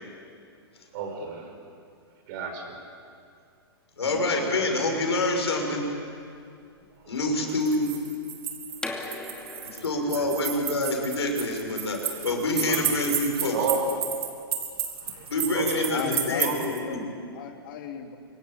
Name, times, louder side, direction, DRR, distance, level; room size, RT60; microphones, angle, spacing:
voice 1, 0.9-1.5 2.3-2.8 4.0-4.2 7.0-7.1 9.2-9.3 10.0-10.3 12.6-13.1 13.5-14.0 15.0-15.3 15.5-15.8 16.4-16.7, right 5 dB, 50° right, 4 dB, 5.9 m, -32 dB
voice 2, 4.0-5.8 7.1-7.9 9.6-13.7 15.3-16.6 16.9-17.0, left 2 dB, 85° left, 2 dB, 6.4 m, -26 dB
sound 1, 7.5-16.8, right 8 dB, 70° right, 4.2 m, -32 dB
sound 2, 8.7-14.3, left 2 dB, 5° left, 2.5 m, -41 dB
voice 3, 15.0-15.6 15.9-18.2, left 8 dB, 55° left, 5 dB, 2.7 m, -36 dB
26.0 x 23.0 x 9.1 m, 2.4 s
hypercardioid pair, 120°, 13 cm